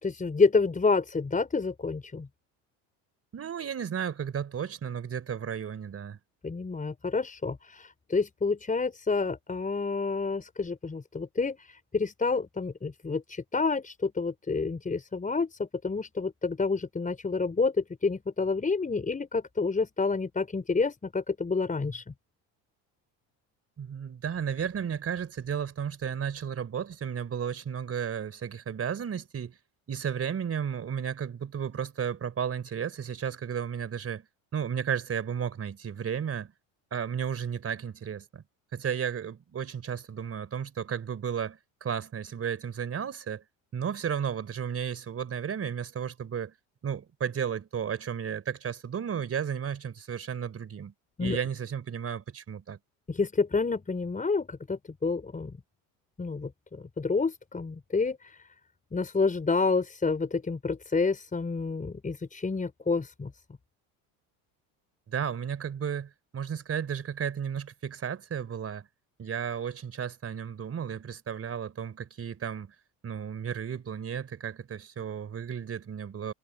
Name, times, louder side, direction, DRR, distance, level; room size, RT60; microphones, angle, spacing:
voice 1, 0.0-2.3 6.4-22.1 51.2-51.4 53.1-55.5 56.2-58.4 58.9-63.3, left 4 dB, 20° left, 5.0 m, -29 dB
voice 2, 3.3-6.2 23.8-29.6 29.9-34.3 34.5-36.5 36.9-38.4 38.7-43.4 43.7-46.5 46.8-50.9 51.2-52.8 65.1-68.9 69.2-72.7 73.0-76.3, right 8 dB, 35° right, 3.7 m, -33 dB
supercardioid pair, 90°, 39 cm